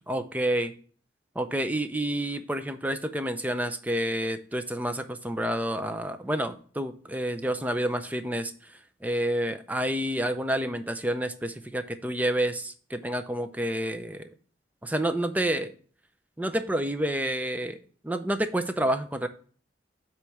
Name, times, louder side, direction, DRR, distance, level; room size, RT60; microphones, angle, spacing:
voice 1, 0.1-0.7 1.4-8.5 9.0-14.3 14.8-15.7 16.4-17.8 18.0-19.3, right 1 dB, 10° right, 9 dB, 0.5 m, -29 dB
8.0 x 3.1 x 5.8 m, 0.43 s
head